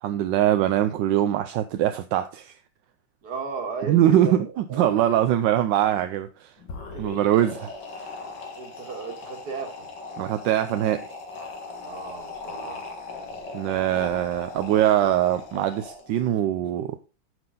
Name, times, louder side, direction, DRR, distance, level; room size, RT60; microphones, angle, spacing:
voice 1, 0.0-2.5 3.9-6.5 7.0-8.1 10.2-11.1 13.5-17.0, right 12 dB, 70° right, 1.2 m, -23 dB
voice 2, 3.2-5.3 6.9-7.1 8.6-9.9 11.8-12.8, right 5 dB, 50° right, 2.3 m, -36 dB
sound 1, 6.6-16.3, left 3 dB, 60° left, 2.3 m, -39 dB
9.7 x 6.2 x 3.8 m
omnidirectional pair, 2.2 m